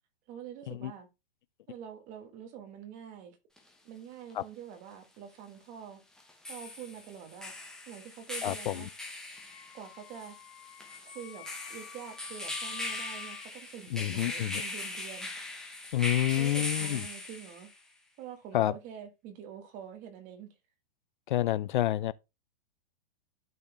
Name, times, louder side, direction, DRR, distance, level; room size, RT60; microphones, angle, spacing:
voice 1, 0.3-1.1 1.7-3.4 3.8-6.0 6.5-8.9 9.7-10.4 11.1-15.3 16.0-17.7 18.2-20.5, right 9 dB, 25° right, 1.5 m, -46 dB
sound 1, 3.6-3.7 6.2-17.8, left 2 dB, ahead, 1.0 m, -40 dB
voice 2, 8.4-8.8 13.9-14.6 15.9-17.0 18.5-18.7 21.3-22.1, left 13 dB, 55° left, 0.4 m, -28 dB
Wind instrument woodwind instrument, 9.4-13.5, left 10 dB, 30° left, 1.4 m, -50 dB
11.5 x 4.2 x 3.3 m
hypercardioid pair, 160°, 30 cm